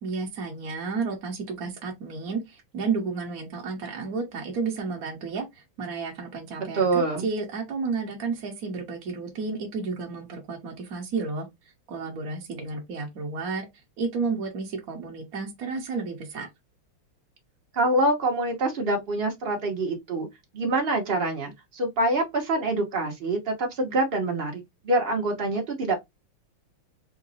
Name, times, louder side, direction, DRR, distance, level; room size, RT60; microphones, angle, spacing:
voice 1, 0.0-11.5 11.9-13.7 14.0-16.5, right 4 dB, 55° right, 1.2 m, -32 dB
voice 2, 6.7-7.3 17.7-20.3 20.5-25.9, right 2 dB, 80° right, 0.5 m, -25 dB
3.7 x 2.0 x 3.9 m
omnidirectional pair, 2.3 m